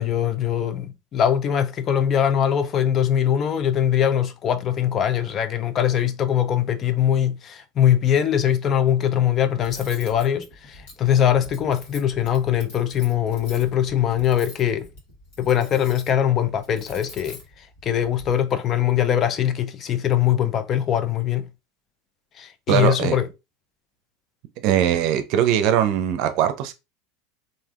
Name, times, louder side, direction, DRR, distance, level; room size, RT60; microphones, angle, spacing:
voice 1, 0.0-14.9 15.4-17.4 17.8-21.5 22.4-23.3, left 10 dB, 40° left, 0.5 m, -22 dB
Cutlery silverware, 9.6-18.3, left 1 dB, 70° left, 1.4 m, -45 dB
voice 2, 22.7-23.2 24.6-26.7, right 10 dB, 60° right, 0.5 m, -21 dB
3.4 x 2.5 x 2.4 m
hypercardioid pair, 90°, 0 cm